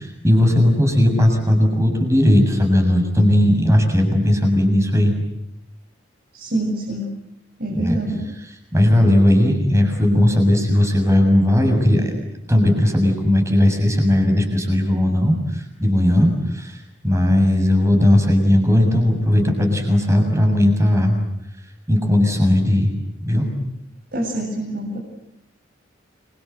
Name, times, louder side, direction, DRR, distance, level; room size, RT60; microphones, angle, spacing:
voice 1, 0.0-5.1 7.7-8.0 8.4-12.1 12.5-16.3 16.5-16.7 17.0-21.2 21.9-22.9 23.3-23.5, left 1 dB, 15° right, 4 dB, 6.9 m, -17 dB
voice 2, 6.3-7.1 7.6-8.2 24.1-25.0, right 1 dB, 55° right, -3 dB, 7.7 m, -25 dB
29.0 x 24.0 x 8.1 m, 0.83 s
head